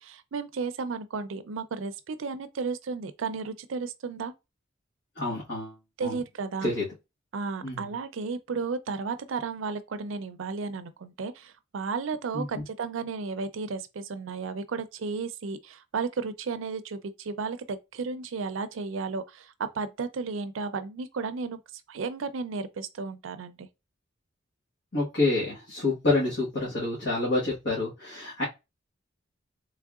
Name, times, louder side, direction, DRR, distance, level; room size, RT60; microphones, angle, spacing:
voice 1, 0.0-4.3 6.0-6.7 7.3-21.6 21.9-23.7, right 4 dB, 85° right, 0.5 m, -33 dB
voice 2, 5.2-5.7 6.0-6.2 6.6-6.9 7.6-7.9 12.3-12.6 24.9-28.4, left 2 dB, 60° left, 1.4 m, -28 dB
3.6 x 3.3 x 2.3 m
head